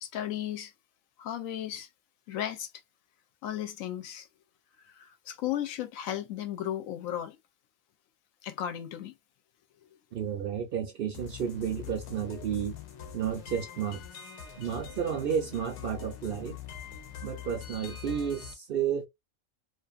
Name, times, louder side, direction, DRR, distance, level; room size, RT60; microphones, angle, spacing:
voice 1, 0.0-0.7 1.2-1.9 2.3-2.7 3.4-4.3 4.9-7.4 8.4-9.1, left 11 dB, 90° left, 1.0 m, -35 dB
voice 2, 10.1-12.8 13.1-14.0 14.6-16.6 17.2-19.1, right 8 dB, 65° right, 0.6 m, -32 dB
sound 1, 11.1-18.5, left 9 dB, 65° left, 0.9 m, -43 dB
2.5 x 2.4 x 2.4 m
omnidirectional pair, 1.4 m